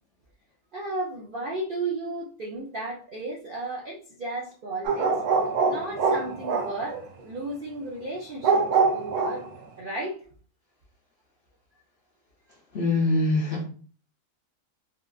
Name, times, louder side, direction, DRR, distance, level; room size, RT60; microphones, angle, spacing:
voice 1, 0.7-5.1 5.7-9.4 9.8-10.2, right 2 dB, 60° right, 0.5 m, -34 dB
sound 1, 4.8-7.0 8.4-9.5, right 4 dB, 85° right, 1.1 m, -24 dB
voice 2, 12.7-13.7, left 2 dB, 55° left, 0.7 m, -23 dB
3.6 x 2.4 x 2.3 m
omnidirectional pair, 1.6 m